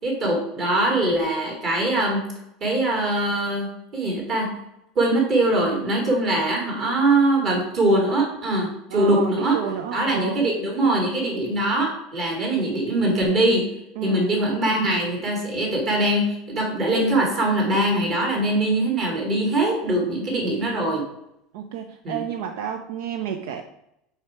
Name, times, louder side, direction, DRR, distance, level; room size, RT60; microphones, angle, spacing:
voice 1, 0.0-2.2 2.6-4.5 5.0-9.6 9.9-13.6 14.0-21.0 22.0-22.3, right 1 dB, 40° right, 0 dB, 2.5 m, -22 dB
voice 2, 8.9-10.4 14.0-14.2 21.5-23.6, right 8 dB, 80° right, 6 dB, 0.5 m, -31 dB
5.8 x 4.7 x 4.4 m, 0.82 s
supercardioid pair, 135°, 0 cm